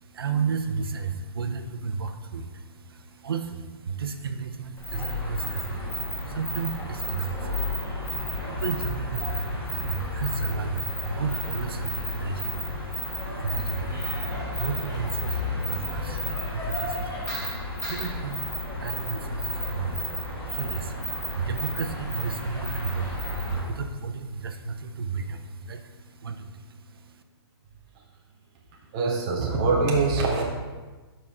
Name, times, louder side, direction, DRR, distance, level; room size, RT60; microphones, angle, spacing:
voice 1, 0.0-27.2, right 5 dB, 60° right, 7 dB, 0.6 m, -33 dB
sound 1, 4.8-23.7, left 1 dB, 10° left, 1.4 m, -32 dB
voice 2, 28.9-30.4, right 3 dB, 15° right, -1 dB, 0.4 m, -23 dB
6.4 x 5.3 x 4.3 m, 1.3 s
hypercardioid pair, 175°, 14 cm